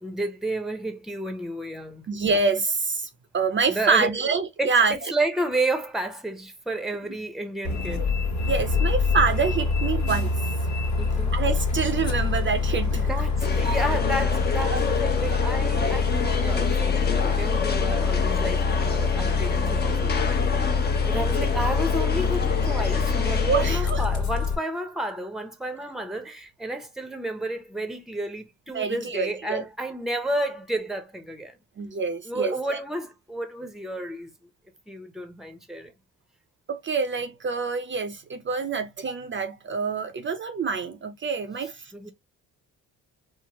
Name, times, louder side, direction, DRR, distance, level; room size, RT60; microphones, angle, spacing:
voice 1, 0.0-2.1 3.7-4.1 4.6-8.1 11.0-11.4 12.9-20.2 21.0-31.6 32.2-34.3 34.9-35.9 41.9-42.1, right 1 dB, ahead, 0.9 m, -31 dB
voice 2, 2.1-3.1 3.3-4.9 8.4-10.3 11.3-13.1 14.7-14.8 16.4-16.6 21.1-21.5 23.4-24.0 28.7-29.6 31.8-32.8 36.7-42.1, right 5 dB, 40° right, 0.7 m, -26 dB
Bus, 7.6-24.5, left 4 dB, 65° left, 1.2 m, -25 dB
sound 1, 13.4-23.8, left 5 dB, 35° left, 0.9 m, -29 dB
4.5 x 2.1 x 3.0 m
cardioid pair, 90°, 30 cm